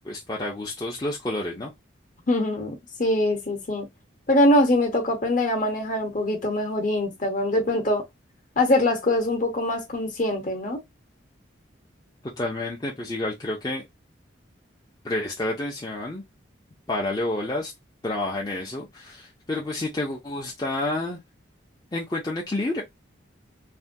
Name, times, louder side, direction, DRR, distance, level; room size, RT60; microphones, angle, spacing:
voice 1, 0.0-1.7 12.2-13.9 15.0-16.2 16.9-17.7 18.0-21.2 21.9-22.8, left 2 dB, 20° left, 0.6 m, -29 dB
voice 2, 2.3-3.9 4.3-8.0 8.6-10.8, left 1 dB, 45° left, 1.0 m, -23 dB
3.4 x 2.2 x 2.6 m
head